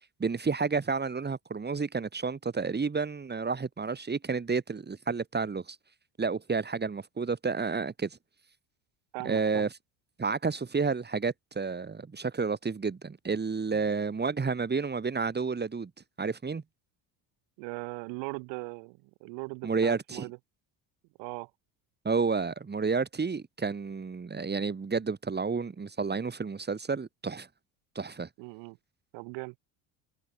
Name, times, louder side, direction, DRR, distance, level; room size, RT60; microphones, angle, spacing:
voice 1, 0.2-5.8 6.2-8.2 9.2-9.7 10.2-15.9 16.2-16.6 19.6-20.3 22.0-27.5 27.9-28.3, right 4 dB, 20° right, 3.5 m, -30 dB
voice 2, 9.1-9.6 17.6-20.4 21.2-21.5 28.4-28.8 29.1-29.5, right 31 dB, 75° right, 3.0 m, -39 dB
supercardioid pair, 95°, 45 cm